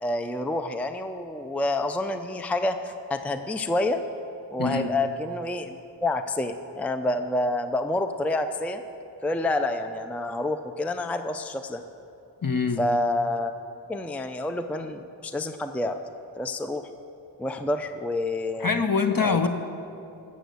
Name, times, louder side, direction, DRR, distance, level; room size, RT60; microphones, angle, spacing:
voice 1, 0.0-4.0 4.5-8.8 9.2-11.8 12.8-13.5 13.9-16.0 16.4-16.9 17.4-18.8 19.2-19.5, left 2 dB, 5° left, 8 dB, 0.5 m, -28 dB
voice 2, 4.6-4.9 12.4-12.8 18.6-19.5, left 5 dB, 50° left, 6 dB, 0.9 m, -24 dB
15.0 x 6.4 x 8.0 m, 2.9 s
wide cardioid pair, 70°, 45 cm